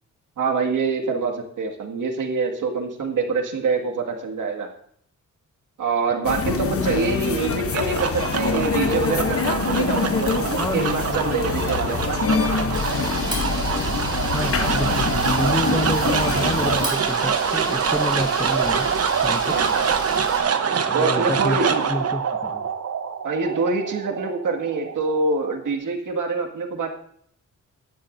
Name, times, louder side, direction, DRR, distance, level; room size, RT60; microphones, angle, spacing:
voice 1, 0.4-4.7 5.8-12.2 19.5-19.8 20.9-21.8 23.2-26.9, right 4 dB, 85° right, 2 dB, 2.0 m, -25 dB
sound 1, 6.2-16.9, left 5 dB, 45° left, 0.9 m, -25 dB
sound 2, 7.4-25.7, right 6 dB, 50° right, 0.9 m, -25 dB
voice 2, 10.4-12.0 14.3-18.9 19.2-19.6 20.9-21.6 21.9-22.7, left 1 dB, 10° left, 10 dB, 0.6 m, -29 dB
Camera, 12.7-20.4, right 1 dB, 15° right, 3.4 m, -33 dB
17.0 x 11.5 x 2.6 m, 0.65 s
wide cardioid pair, 170°, 31 cm